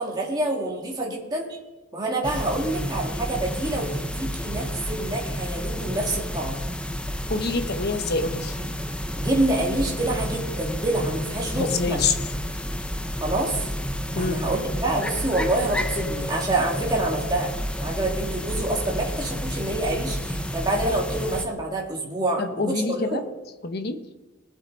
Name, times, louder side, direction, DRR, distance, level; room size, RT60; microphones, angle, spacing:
voice 1, 0.0-1.6 1.9-6.6 9.2-12.0 13.2-13.7 14.2-17.5 17.8-23.2, right 2 dB, 20° right, -2 dB, 2.4 m, -27 dB
sound 1, 2.2-21.5, equal, 5° left, 0.6 m, -30 dB
voice 2, 7.3-8.5 11.5-12.1 14.1-14.4 22.4-23.2 23.6-24.0, left 4 dB, 55° left, 8 dB, 1.0 m, -26 dB
sound 2, 14.1-18.2, left 3 dB, 60° right, 1.7 m, -42 dB
20.5 x 7.6 x 4.0 m, 1.1 s
head